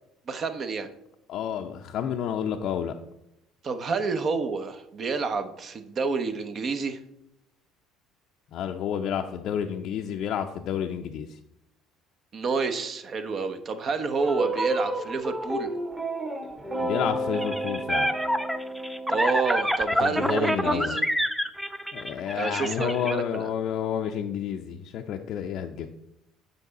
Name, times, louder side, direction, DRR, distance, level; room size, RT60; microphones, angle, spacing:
voice 1, 0.3-0.9 3.6-7.0 12.3-15.7 19.1-21.1 22.3-23.5, right 4 dB, 45° right, 9 dB, 0.8 m, -29 dB
voice 2, 1.3-2.9 8.5-11.4 16.8-18.1 20.0-21.0 21.9-25.9, left 9 dB, 60° left, 3 dB, 0.5 m, -30 dB
sound 1, 14.2-19.2, right 1 dB, 25° right, 1.5 m, -31 dB
sound 2, 17.3-23.1, equal, 5° right, 0.7 m, -27 dB
8.3 x 5.2 x 4.0 m, 0.85 s
hypercardioid pair, 60°, 0 cm